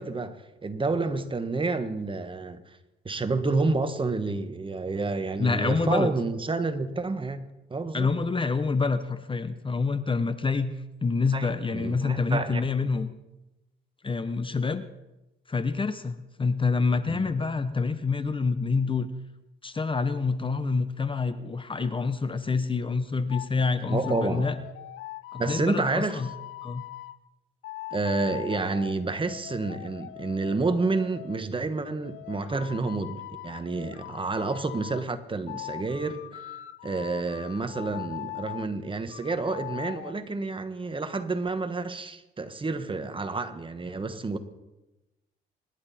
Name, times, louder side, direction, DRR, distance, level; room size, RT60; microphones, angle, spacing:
voice 1, 0.0-2.8 3.0-7.4 7.7-8.1 11.3-12.6 17.1-17.2 23.9-24.5 25.4-26.2 27.9-36.6 36.8-44.4, right 3 dB, 25° right, 1.4 m, -29 dB
voice 2, 5.4-6.1 7.9-10.7 11.0-13.1 14.0-14.8 15.5-19.1 19.6-24.6 25.3-26.3 26.6-26.8, left 4 dB, 25° left, 0.9 m, -27 dB
sound 1, 23.3-23.5 23.9-27.2 27.6-31.4 32.0-35.0 35.5-38.7 39.1-40.1, left 15 dB, 85° left, 0.7 m, -41 dB
25.5 x 11.5 x 4.3 m
cardioid pair, 90°, 20 cm